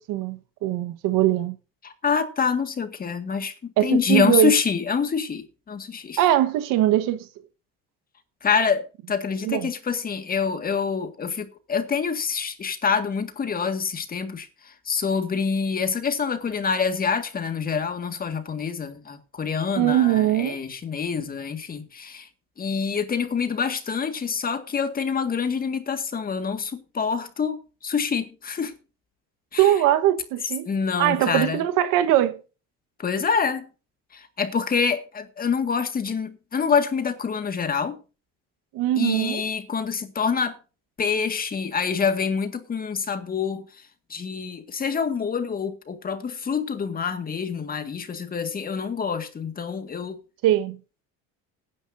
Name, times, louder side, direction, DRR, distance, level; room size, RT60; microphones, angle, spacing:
voice 1, 0.1-1.6 3.8-4.5 6.2-7.3 9.4-9.7 19.8-20.6 29.6-30.7 31.0-32.4 38.7-39.4 50.4-50.8, right 13 dB, 75° right, 1.4 m, -21 dB
voice 2, 1.8-6.2 8.4-22.3 22.6-28.8 29.5-29.7 30.6-31.6 33.0-33.7 34.1-38.0 39.0-40.6 41.0-50.2, left 6 dB, 25° left, 1.9 m, -26 dB
18.5 x 10.5 x 2.7 m
cardioid pair, 140°, 33 cm